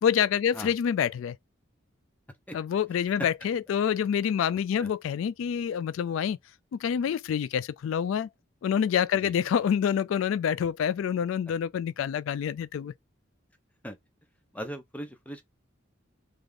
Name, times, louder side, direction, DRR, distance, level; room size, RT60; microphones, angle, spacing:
voice 1, 0.0-1.4 2.5-6.4 6.7-8.3 8.6-12.9, left 8 dB, 85° left, 0.3 m, -27 dB
voice 2, 14.5-15.4, equal, 5° left, 0.8 m, -38 dB
3.6 x 3.4 x 3.7 m
head